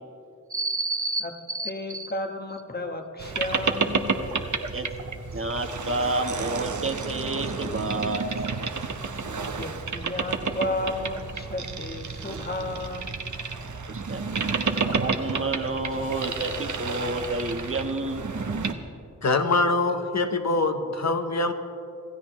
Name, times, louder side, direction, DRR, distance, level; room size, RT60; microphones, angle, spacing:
voice 1, 0.5-2.1 4.7-4.9 5.3-8.2 13.9-14.2 15.0-18.2, right 2 dB, 45° right, 5 dB, 1.3 m, -29 dB
voice 2, 1.6-4.1 9.4-13.1, left 1 dB, 30° left, 4 dB, 1.5 m, -33 dB
Boat Water vehicle, 3.2-18.7, right 4 dB, 65° right, 1.0 m, -30 dB
voice 3, 19.2-21.5, left 3 dB, 55° left, 7 dB, 1.1 m, -24 dB
26.5 x 15.5 x 3.2 m, 2.7 s
wide cardioid pair, 75°, 31 cm